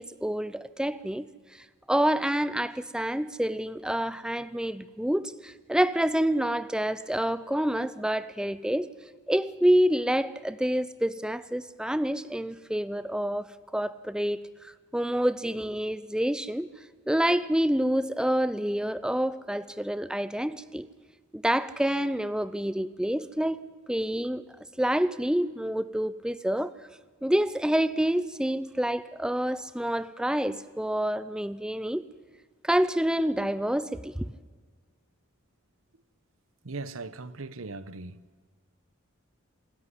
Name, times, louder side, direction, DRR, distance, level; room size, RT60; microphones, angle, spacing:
voice 1, 0.0-8.9 9.3-14.4 14.6-16.7 17.1-20.9 21.3-24.4 24.8-26.7 27.2-32.1 32.6-34.3, right 1 dB, 5° right, 0.6 m, -27 dB
voice 2, 36.6-38.2, right 3 dB, 85° right, 1.0 m, -39 dB
26.5 x 13.5 x 9.9 m
head